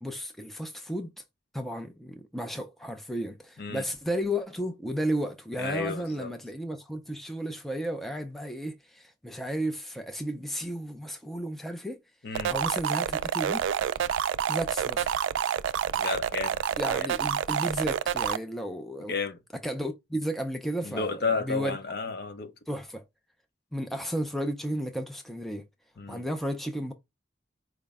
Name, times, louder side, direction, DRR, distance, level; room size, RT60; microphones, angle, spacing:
voice 1, 0.0-1.2 1.5-12.0 12.3-13.6 14.5-15.2 16.8-19.1 19.6-21.8 22.7-23.0 23.7-25.6 26.1-26.9, equal, ahead, 0.4 m, -33 dB
voice 2, 5.6-6.3 12.2-12.5 16.0-16.5 16.9-17.1 19.1-19.4 20.8-22.5 26.0-26.2, left 4 dB, 60° left, 0.7 m, -32 dB
sound 1, 12.3-18.4, right 8 dB, 80° right, 0.3 m, -28 dB
4.8 x 2.1 x 3.4 m
head